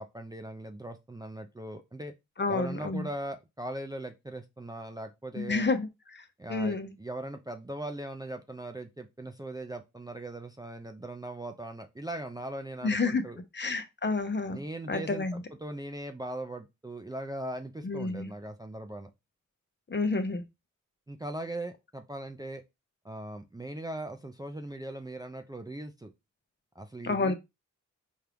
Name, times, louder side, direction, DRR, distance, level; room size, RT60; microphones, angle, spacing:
voice 1, 0.0-2.1 2.5-5.7 6.4-13.4 14.5-19.1 21.1-22.6 23.0-26.1 26.8-27.3, right 1 dB, 15° right, 0.4 m, -39 dB
voice 2, 2.4-3.1 5.4-5.9 6.1-6.2 6.5-6.9 12.8-13.2 13.5-14.6 14.9-15.4 17.8-18.3 19.9-20.4 27.0-27.3, left 3 dB, 35° left, 0.7 m, -29 dB
4.4 x 2.4 x 3.4 m
cardioid pair, 65°, 31 cm